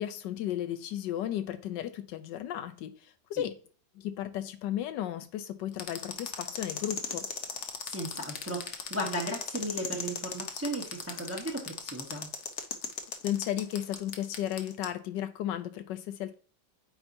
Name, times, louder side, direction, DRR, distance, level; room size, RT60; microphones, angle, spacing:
voice 1, 0.0-3.6 3.9-7.3 13.2-16.3, left 11 dB, 75° left, 1.2 m, -34 dB
sound 1, 5.8-14.8, left 7 dB, 60° left, 0.7 m, -37 dB
voice 2, 7.8-12.3, right 1 dB, 15° right, 0.5 m, -35 dB
8.8 x 4.2 x 2.6 m
omnidirectional pair, 2.0 m